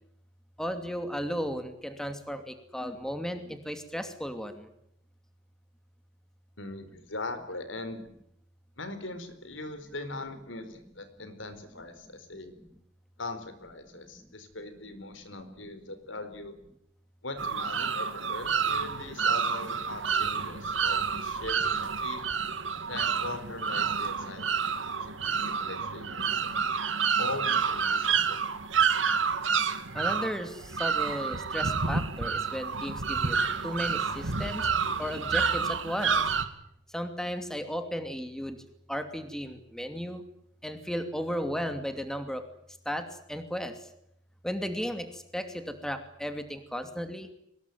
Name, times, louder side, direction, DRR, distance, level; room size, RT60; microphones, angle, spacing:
voice 1, 0.6-4.7 29.9-33.4 33.6-34.7 35.0-36.2 36.9-38.6 38.9-40.2 40.6-42.4 42.9-43.7 44.4-47.3, equal, 5° left, 7 dB, 2.7 m, -35 dB
voice 2, 6.6-8.0 8.8-12.5 13.2-16.5 17.2-22.3 22.9-26.6 27.2-28.4, left 2 dB, 80° left, 10 dB, 4.4 m, -40 dB
sound 1, 17.4-36.4, right 6 dB, 80° right, 2.4 m, -29 dB
23.5 x 20.5 x 9.4 m, 0.75 s
head